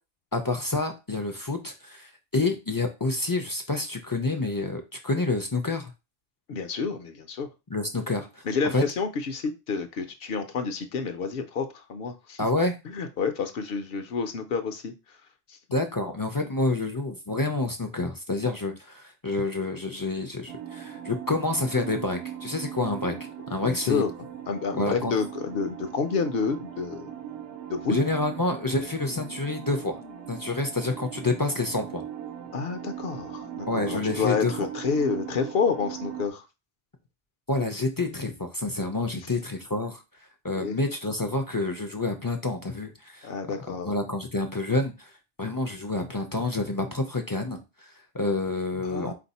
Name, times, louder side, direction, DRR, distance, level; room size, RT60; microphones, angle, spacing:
voice 1, 0.3-5.9 7.7-8.4 8.7-8.8 12.4-12.8 15.7-23.2 23.5-24.0 24.7-25.1 27.9-30.0 30.3-32.0 33.7-34.5 37.5-40.0 40.4-43.3 43.9-45.1 45.4-49.1, left 2 dB, 35° left, 4 dB, 0.3 m, -28 dB
voice 2, 6.5-7.5 8.4-12.4 12.8-15.2 15.5-15.6 23.1-23.2 23.6-27.1 27.7-28.0 32.5-36.4 40.6-40.8 43.2-43.9 48.8-49.1, left 5 dB, 70° left, 7 dB, 0.8 m, -29 dB
sound 1, 20.5-36.3, right 9 dB, 75° right, 0.9 m, -39 dB
4.1 x 2.6 x 4.0 m, 0.27 s
omnidirectional pair, 1.0 m